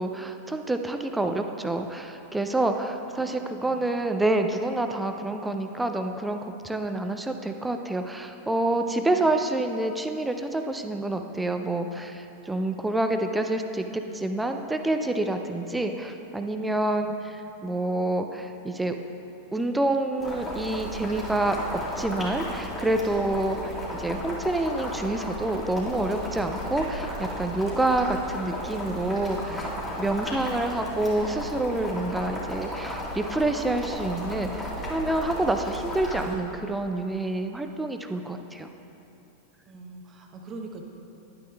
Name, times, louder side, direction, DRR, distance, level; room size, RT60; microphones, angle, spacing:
voice 1, 0.0-19.0 19.5-29.7 29.9-38.7, right 2 dB, 5° right, 6 dB, 0.4 m, -28 dB
voice 2, 3.2-3.9 8.8-9.3 13.8-14.2 17.0-17.1 29.4-29.7 39.7-40.8, right 3 dB, 25° right, 2 dB, 0.9 m, -44 dB
Boiling, 20.2-36.3, equal, 15° left, 1.9 m, -34 dB
11.5 x 9.0 x 2.3 m, 3.0 s
figure-of-eight pair, 90°, 0 cm